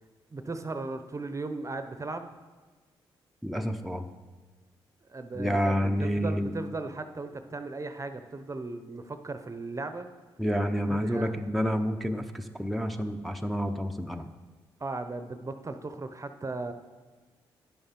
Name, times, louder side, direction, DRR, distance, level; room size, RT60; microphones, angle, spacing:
voice 1, 0.3-2.3 5.1-10.1 10.9-11.4 14.8-16.7, right 3 dB, 30° right, 9 dB, 0.8 m, -37 dB
voice 2, 3.4-4.1 5.3-6.5 10.4-14.3, equal, ahead, 4 dB, 0.8 m, -29 dB
10.5 x 7.1 x 5.3 m, 1.3 s
supercardioid pair, 50°, 10 cm